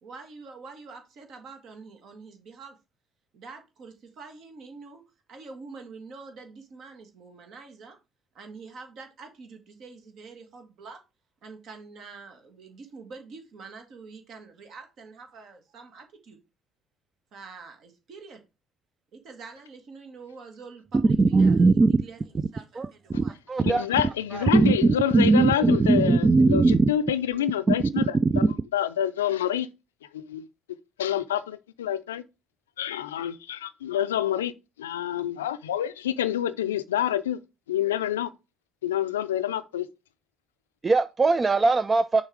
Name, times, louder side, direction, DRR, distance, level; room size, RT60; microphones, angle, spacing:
voice 1, 0.0-2.8 3.3-5.0 5.3-8.0 8.3-11.0 11.4-16.4 17.3-18.4 19.1-23.4, right 4 dB, 55° right, 1.8 m, -46 dB
voice 2, 21.2-21.9 22.8-22.9 23.5-23.9 24.3-26.8 27.7-27.8 40.8-42.2, right 3 dB, 30° right, 0.4 m, -20 dB
voice 3, 23.6-29.7 30.1-30.5 31.0-32.2 32.8-34.5 34.8-37.4 37.7-38.3 38.8-39.9, left 10 dB, 80° left, 0.4 m, -27 dB
6.4 x 4.0 x 4.8 m
hypercardioid pair, 55°, 0 cm